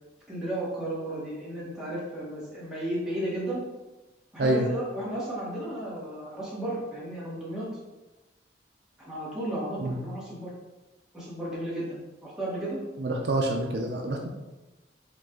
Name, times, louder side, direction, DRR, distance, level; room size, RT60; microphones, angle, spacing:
voice 1, 0.3-3.6 4.3-7.7 9.0-10.5 11.1-12.8, right 1 dB, 5° right, -8 dB, 1.2 m, -34 dB
voice 2, 13.0-14.3, right 1 dB, 60° right, 1 dB, 0.5 m, -27 dB
4.7 x 2.4 x 3.7 m, 1.1 s
head